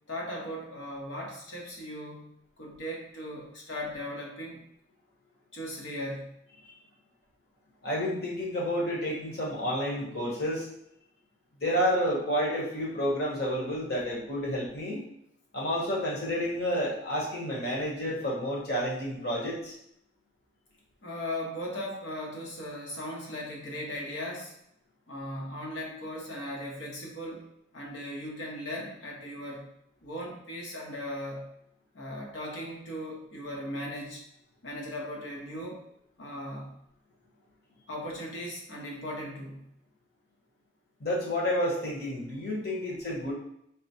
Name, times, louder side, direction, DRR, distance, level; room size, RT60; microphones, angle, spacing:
voice 1, 0.1-2.3 2.6-4.6 5.5-6.3 21.0-24.5 25.1-27.5 27.7-29.7 30.0-31.5 31.9-34.2 34.6-35.8 36.2-36.8 37.9-39.7, left 1 dB, 80° left, -2 dB, 1.1 m, -38 dB
voice 2, 7.8-10.7 11.6-15.0 15.5-19.7 41.0-43.3, equal, 55° left, -4 dB, 1.2 m, -30 dB
4.0 x 2.2 x 4.2 m, 0.74 s
head